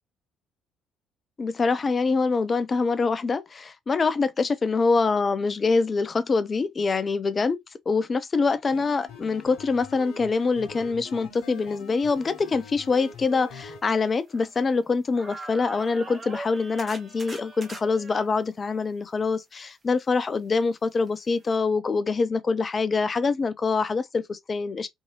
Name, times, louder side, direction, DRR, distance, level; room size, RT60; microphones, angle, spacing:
voice 1, 1.4-7.6 7.9-24.9, left 4 dB, 30° left, 0.4 m, -25 dB
sound 1, 8.6-13.8, left 4 dB, 65° left, 0.7 m, -43 dB
sound 2, 12.4-12.5 13.1-14.9 15.1-18.3 21.1-21.2 21.5-21.6, right 2 dB, 30° right, 0.7 m, -43 dB
2.6 x 2.6 x 2.8 m
figure-of-eight pair, 50°, 0 cm